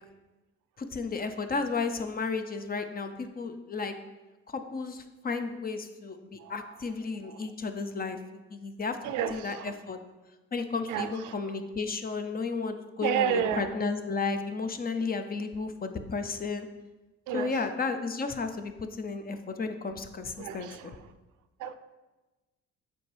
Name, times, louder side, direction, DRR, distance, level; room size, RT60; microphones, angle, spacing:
voice 1, 0.8-3.9 4.5-8.2 8.5-9.0 9.3-10.0 10.5-16.7 17.3-20.9, left 4 dB, 30° left, 8 dB, 0.6 m, -33 dB
voice 2, 9.0-9.7 10.9-11.1 13.0-13.7 17.3-17.5 20.4-20.9 21.6-21.7, right 8 dB, 90° right, 11 dB, 0.5 m, -30 dB
7.5 x 4.6 x 3.4 m, 1.1 s
cardioid pair, 90°, 30 cm